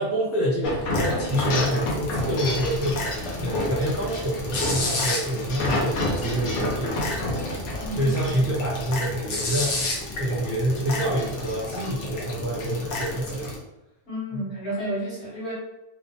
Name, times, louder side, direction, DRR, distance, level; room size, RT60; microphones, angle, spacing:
voice 1, 0.0-7.4 7.9-13.5 14.3-14.4, equal, 25° right, -6 dB, 0.3 m, -27 dB
sound 1, 0.6-13.6, left 1 dB, 90° left, 1.0 m, -29 dB
voice 2, 7.8-8.1 14.1-15.5, equal, 70° left, -6 dB, 1.4 m, -31 dB
2.8 x 2.0 x 2.8 m, 0.92 s
omnidirectional pair, 1.2 m